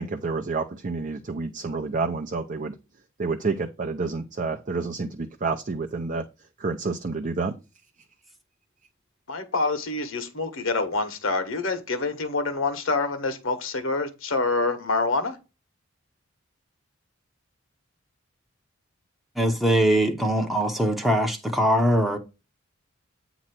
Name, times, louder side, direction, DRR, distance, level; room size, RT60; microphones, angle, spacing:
voice 1, 0.0-2.7 3.2-6.2 6.6-7.5, right 4 dB, 40° right, 0.5 m, -29 dB
voice 2, 9.3-15.4, left 3 dB, 65° left, 1.4 m, -26 dB
voice 3, 19.4-22.2, equal, ahead, 0.7 m, -22 dB
8.6 x 3.0 x 5.8 m
head